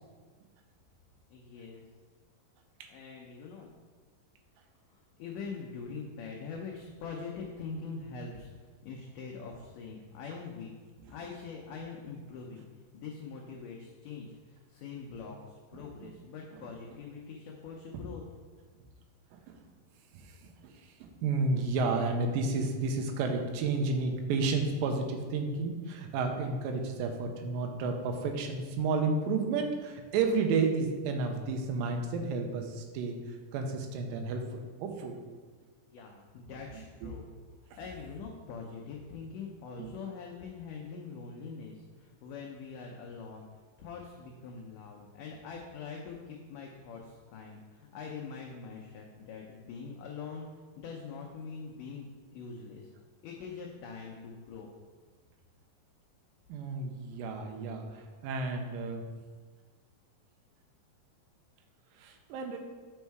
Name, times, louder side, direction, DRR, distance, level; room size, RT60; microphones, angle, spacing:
voice 1, 1.3-1.8 2.9-3.7 4.9-8.5 8.8-10.7 11.1-18.2 35.9-37.3 37.7-52.1 52.3-52.9 53.2-54.7, left 5 dB, 75° left, 0 dB, 2.0 m, -43 dB
voice 2, 20.1-35.2 36.7-37.1 39.8-39.9 56.5-59.0 62.0-62.6, right 4 dB, 80° right, 4 dB, 2.4 m, -32 dB
7.2 x 5.4 x 4.6 m, 1.4 s
omnidirectional pair, 4.3 m